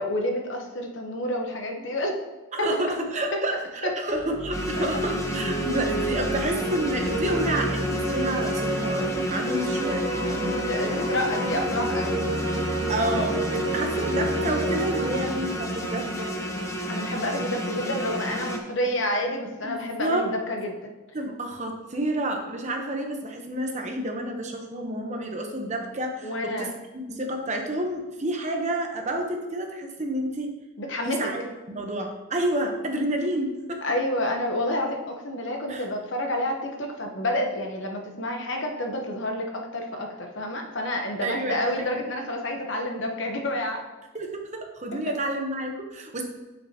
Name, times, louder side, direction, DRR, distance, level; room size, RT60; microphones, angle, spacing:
voice 1, 0.0-2.2 3.3-3.4 4.8-4.9 6.4-6.5 10.4-12.2 16.9-20.9 26.2-26.8 30.8-31.3 33.8-43.8 45.1-45.2, left 1 dB, 60° left, 3 dB, 1.1 m, -29 dB
voice 2, 2.5-3.5 3.8-10.5 12.9-16.3 19.7-20.3 21.1-26.7 27.1-30.5 31.1-33.8 35.7-35.8 41.2-42.0 44.1-46.2, right 1 dB, 35° right, 3 dB, 1.0 m, -29 dB
sound 1, 4.1-16.8, right 1 dB, 50° right, 2.5 m, -29 dB
sound 2, 4.5-18.6, equal, 15° left, 0.8 m, -32 dB
8.7 x 6.6 x 2.9 m, 1.1 s
head